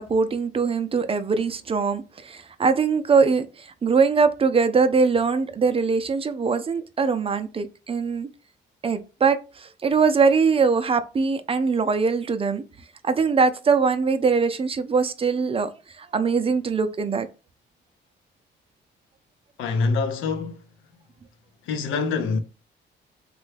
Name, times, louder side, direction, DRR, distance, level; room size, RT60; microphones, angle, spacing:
voice 1, 0.0-8.3 8.8-12.6 13.0-15.7 16.0-17.3, right 5 dB, 30° right, 0.4 m, -22 dB
voice 2, 19.6-20.7 21.6-22.4, left 4 dB, 85° left, 0.6 m, -25 dB
3.2 x 2.2 x 3.2 m
cardioid pair, 90°, 20 cm